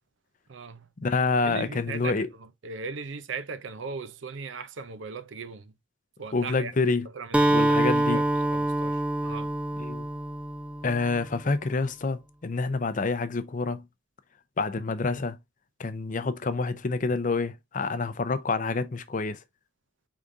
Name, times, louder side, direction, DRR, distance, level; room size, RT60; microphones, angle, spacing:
voice 1, 0.5-0.9 1.4-5.7 6.2-6.7 7.1-9.5, right 4 dB, 85° right, 0.6 m, -38 dB
voice 2, 1.0-2.3 6.3-7.1 7.5-8.2 9.8-10.1 10.8-13.8 14.6-15.4 15.8-19.4, left 3 dB, 45° left, 0.5 m, -27 dB
Acoustic guitar, 7.3-11.2, right 1 dB, 5° right, 0.3 m, -25 dB
5.0 x 3.6 x 2.6 m
head